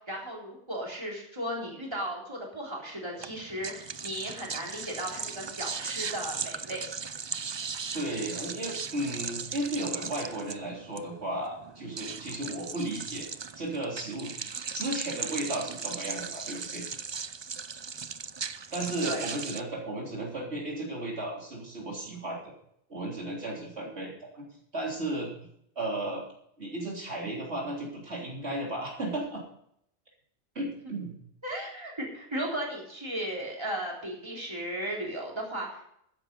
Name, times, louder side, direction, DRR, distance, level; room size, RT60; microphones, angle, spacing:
voice 1, 0.1-6.8 19.0-19.2 31.4-35.9, right 1 dB, 25° right, -2 dB, 3.9 m, -35 dB
sound 1, 3.2-19.6, right 5 dB, 40° right, 0.4 m, -38 dB
voice 2, 7.9-13.3 13.6-14.3 14.7-16.8 18.7-22.5 22.9-24.4 24.7-25.3 25.8-26.2 26.6-29.4 30.6-31.1, right 1 dB, 70° right, -2 dB, 3.7 m, -34 dB
13.5 x 10.5 x 5.3 m, 0.71 s
omnidirectional pair, 1.1 m